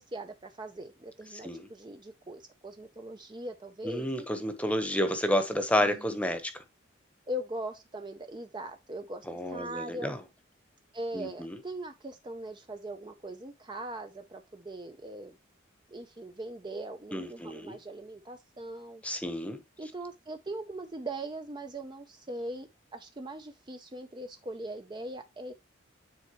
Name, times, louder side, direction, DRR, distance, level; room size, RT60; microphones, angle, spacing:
voice 1, 0.0-4.5 5.8-6.2 7.3-10.2 10.9-15.3 15.9-19.0 19.8-25.5, right 1 dB, 20° right, 0.5 m, -40 dB
voice 2, 1.3-1.7 3.8-6.6 9.3-10.2 11.1-11.6 17.1-17.8 19.0-19.6, equal, 5° left, 1.0 m, -30 dB
9.6 x 4.3 x 3.0 m
head